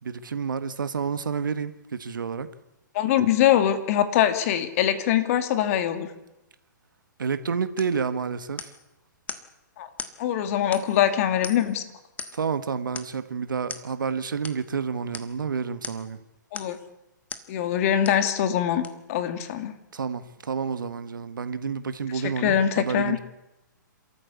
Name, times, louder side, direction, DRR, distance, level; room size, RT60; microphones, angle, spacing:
voice 1, 0.0-2.5 7.2-8.7 12.3-16.2 19.9-23.2, right 6 dB, 80° right, 1.5 m, -29 dB
voice 2, 2.9-6.1 9.8-9.9 10.2-11.8 16.5-16.8 17.5-18.8 19.1-19.7 22.2-23.2, left 10 dB, 45° left, 2.4 m, -23 dB
sound 1, 7.8-8.0 8.6-8.9 9.3-9.5 10.0-10.2 10.7-11.1 11.4-11.8 12.2-12.5 13.0-13.2 13.7-13.9 14.4-14.6 15.1-15.3 15.8-16.1 16.5-16.8 17.3-17.5 18.0-18.3 18.8-18.9, left 6 dB, 15° left, 1.4 m, -38 dB
28.5 x 13.5 x 8.4 m
hypercardioid pair, 130°, 11 cm